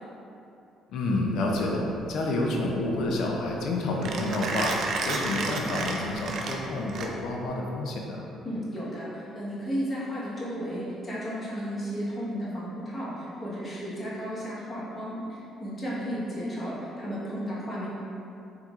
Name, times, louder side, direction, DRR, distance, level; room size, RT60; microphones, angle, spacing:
voice 1, 0.9-4.7 5.0-8.2, left 2 dB, 65° left, 0 dB, 0.4 m, -29 dB
Mechanisms, 1.4-7.5, right 3 dB, 60° right, 0.3 m, -33 dB
voice 2, 8.4-17.9, equal, 40° left, -8 dB, 1.1 m, -34 dB
3.5 x 3.0 x 2.4 m, 2.8 s
hypercardioid pair, 50°, 0 cm